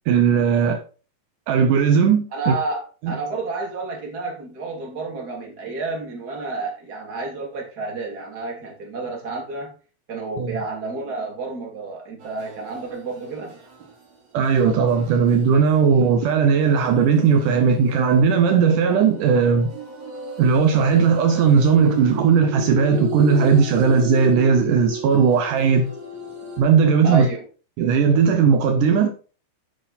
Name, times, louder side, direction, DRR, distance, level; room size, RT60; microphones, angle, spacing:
voice 1, 0.1-0.8 1.5-2.5 3.0-3.2 10.4-10.6 14.3-19.7 20.4-25.9 26.6-27.3 27.8-29.1, right 6 dB, 80° right, 1.8 m, -17 dB
voice 2, 2.3-9.7 10.1-13.5 27.0-27.4, right 3 dB, 25° right, 2.6 m, -30 dB
sound 1, 12.2-14.1 14.6-26.6, right 3 dB, 45° right, 3.9 m, -34 dB
8.9 x 7.8 x 4.2 m
omnidirectional pair, 5.0 m